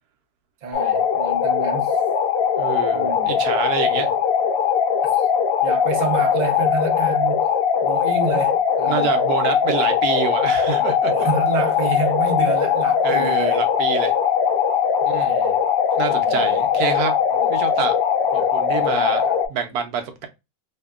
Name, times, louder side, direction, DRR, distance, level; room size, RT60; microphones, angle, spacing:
voice 1, 0.6-2.0 2.9-3.3 5.1-5.2 5.6-7.5 7.8-9.2 11.1-13.7 15.3-15.6 16.1-16.6 17.3-17.5 18.4-18.5 18.8-19.4, right 4 dB, 85° right, 0.3 m, -29 dB
sound 1, 0.7-19.5, left 7 dB, 65° left, 0.8 m, -20 dB
voice 2, 2.6-4.1 8.9-11.1 13.0-14.1 15.1-15.4 16.0-17.1 17.5-17.9 18.3-20.3, right 7 dB, 70° right, 1.0 m, -26 dB
2.8 x 2.6 x 2.2 m
omnidirectional pair, 1.9 m